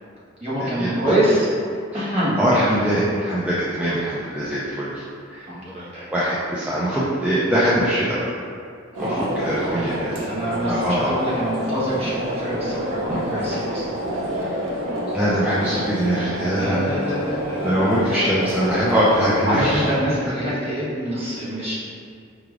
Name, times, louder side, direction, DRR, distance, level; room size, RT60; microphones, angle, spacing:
voice 1, 0.4-1.5 1.9-2.4 5.5-6.1 8.9-14.0 16.4-18.2 18.8-19.1 19.4-21.7, equal, 30° right, -10 dB, 1.2 m, -26 dB
voice 2, 2.4-5.0 5.3-5.5 6.1-8.2 9.0-9.1 9.3-10.1 10.7-11.1 13.1-13.2 15.1-16.8 17.6-19.8, equal, 5° right, -9 dB, 0.4 m, -22 dB
sound 1, 8.9-20.0, equal, 80° right, 0.6 m, -28 dB
4.7 x 3.2 x 2.4 m, 2.3 s
head